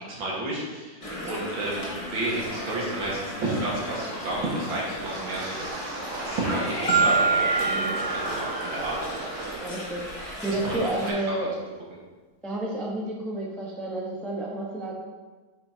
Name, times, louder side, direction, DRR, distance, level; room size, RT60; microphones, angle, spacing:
voice 1, 0.1-5.7 6.2-7.8 8.1-9.0 10.5-11.1 11.4-11.5, right 2 dB, 75° right, -5 dB, 2.5 m, -31 dB
sound 1, 1.0-11.1, equal, 20° left, 1.1 m, -35 dB
Wind, 5.0-9.8 10.1-10.5 10.9-11.2, right 3 dB, 55° right, 0.9 m, -37 dB
Marimba xylophone, 6.9-9.1, right 4 dB, 45° left, 1.0 m, -25 dB
voice 2, 7.6-7.9 9.6-11.6 12.4-14.9, right 1 dB, ahead, -4 dB, 0.7 m, -31 dB
8.2 x 6.5 x 2.9 m, 1.3 s
omnidirectional pair, 2.1 m